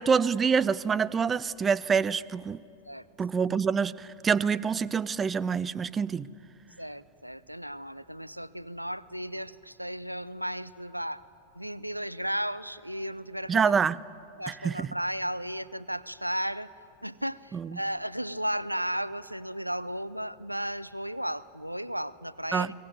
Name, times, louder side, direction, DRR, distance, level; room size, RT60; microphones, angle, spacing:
voice 1, 0.0-2.6 3.2-6.3 13.5-14.0 14.6-14.9 17.5-17.7 22.5-22.7, right 6 dB, 20° right, 20 dB, 0.6 m, -26 dB
voice 2, 6.8-11.2 11.6-13.7 14.4-16.7 17.0-22.7, equal, 90° right, 18 dB, 0.6 m, -34 dB
22.5 x 19.5 x 9.4 m, 2.7 s
figure-of-eight pair, 90°, 0 cm